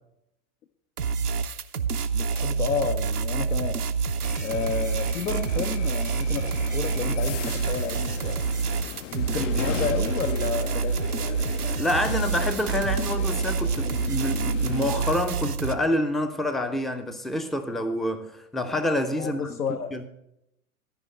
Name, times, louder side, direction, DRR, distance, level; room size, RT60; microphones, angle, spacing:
sound 1, 1.0-15.7, right 5 dB, 90° right, 0.7 m, -27 dB
voice 1, 2.1-3.8 4.4-8.4 9.1-11.0 19.2-19.9, left 6 dB, 80° left, 5 dB, 0.9 m, -31 dB
sound 2, 4.2-15.0, left 12 dB, 55° left, 0.6 m, -37 dB
voice 2, 9.1-9.7 11.8-19.6 19.9-20.1, left 1 dB, ahead, 9 dB, 0.4 m, -28 dB
14.0 x 5.1 x 7.4 m, 0.82 s
figure-of-eight pair, 95°, 44 cm